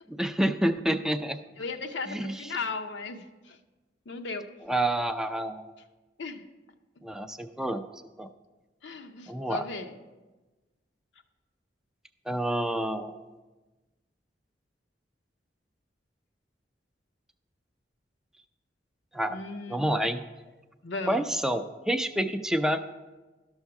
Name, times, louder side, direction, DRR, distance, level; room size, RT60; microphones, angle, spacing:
voice 1, 0.1-1.4 2.1-2.6 4.6-5.6 7.0-8.3 9.3-9.6 12.3-13.2 19.1-19.4 19.7-20.2 21.1-22.8, right 1 dB, 5° right, 8 dB, 0.3 m, -28 dB
voice 2, 1.6-3.6 4.1-4.5 6.2-6.4 8.8-9.9 19.3-19.8 20.8-21.3, left 4 dB, 85° left, 5 dB, 0.7 m, -36 dB
12.0 x 6.3 x 4.7 m, 1.2 s
head